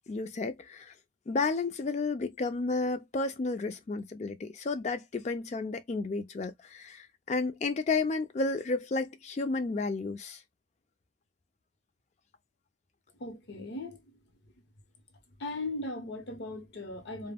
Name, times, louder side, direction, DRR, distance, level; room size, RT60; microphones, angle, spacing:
voice 1, 0.1-0.9 1.3-10.4, left 3 dB, 40° left, 0.4 m, -32 dB
voice 2, 13.2-14.1 15.4-17.3, left 2 dB, 65° left, 0.7 m, -38 dB
2.2 x 2.1 x 3.3 m
head